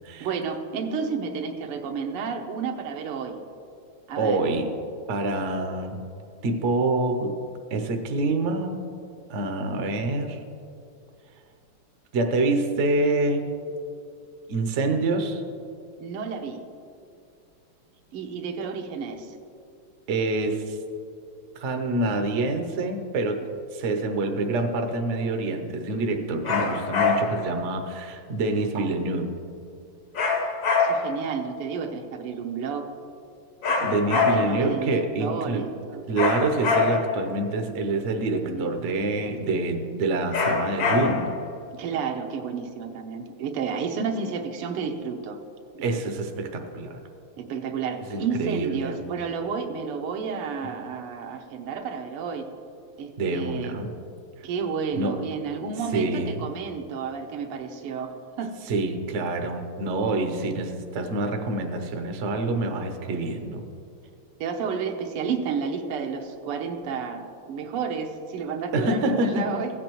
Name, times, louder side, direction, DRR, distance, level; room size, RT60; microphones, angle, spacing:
voice 1, 0.2-3.4 4.1-4.4 16.0-16.6 18.1-19.4 30.8-32.9 33.8-36.1 38.5-38.7 41.7-45.4 47.4-52.5 53.0-53.8 54.4-58.5 64.4-69.7, right 6 dB, 90° right, 5 dB, 1.7 m, -31 dB
voice 2, 4.2-4.7 5.1-6.1 6.4-7.4 7.7-8.8 9.3-10.4 12.1-13.7 14.5-15.4 20.1-20.8 21.6-29.3 33.8-35.7 36.1-41.4 45.8-47.0 48.1-49.0 53.2-53.9 55.0-55.2 55.9-56.4 58.7-63.6 68.7-69.6, right 2 dB, 70° right, 5 dB, 0.7 m, -26 dB
sound 1, 26.4-27.5 30.1-31.2 33.6-34.7 36.2-37.2 40.3-41.4, left 4 dB, 55° left, 0.9 m, -24 dB
16.0 x 8.3 x 3.0 m, 2.5 s
omnidirectional pair, 2.4 m